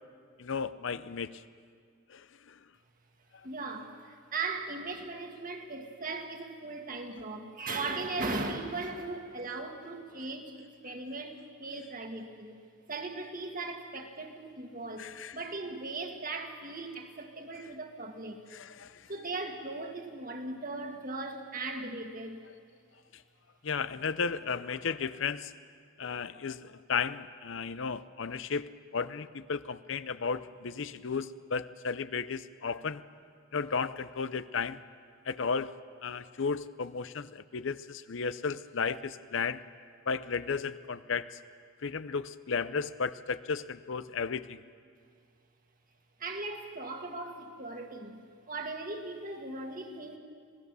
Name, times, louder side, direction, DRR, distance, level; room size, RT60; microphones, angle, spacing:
voice 1, 0.4-1.4 2.1-2.2 15.0-15.4 18.5-19.0 23.6-25.5 26.0-33.0 33.5-34.8 35.3-35.7 36.0-39.6 40.1-41.3 41.8-44.6, left 5 dB, 60° left, 14 dB, 0.6 m, -34 dB
voice 2, 3.4-12.6 12.9-18.4 19.1-22.4 46.2-50.2, right 3 dB, 40° right, 3 dB, 1.9 m, -38 dB
26.5 x 18.0 x 6.9 m, 2.1 s
head